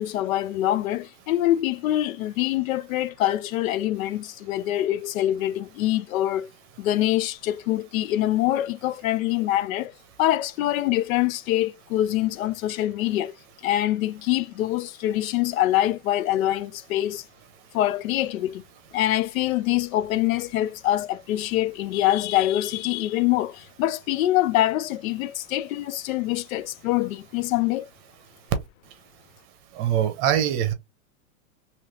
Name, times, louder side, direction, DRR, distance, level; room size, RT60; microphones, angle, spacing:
voice 1, 0.0-6.5 6.8-9.9 10.2-13.3 13.6-17.2 17.7-18.6 18.9-27.9, left 14 dB, 75° left, 0.5 m, -24 dB
voice 2, 29.8-30.7, right 10 dB, 30° right, 0.7 m, -23 dB
3.2 x 2.9 x 2.7 m
supercardioid pair, 150°, 41 cm